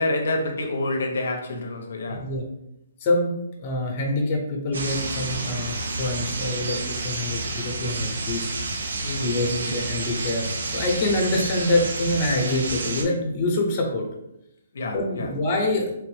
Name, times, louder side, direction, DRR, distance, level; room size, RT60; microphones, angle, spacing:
voice 1, 0.0-2.3 9.0-9.8 14.7-15.3, left 2 dB, 70° left, 4 dB, 0.4 m, -28 dB
voice 2, 2.1-2.5 3.0-3.3 3.6-8.5 9.2-10.4 10.7-14.1 14.9-15.9, left 1 dB, 25° left, 1 dB, 0.6 m, -25 dB
sound 1, 4.7-13.0, right 3 dB, 80° right, 0.6 m, -30 dB
3.2 x 2.0 x 3.2 m, 0.82 s
hypercardioid pair, 170°, 0 cm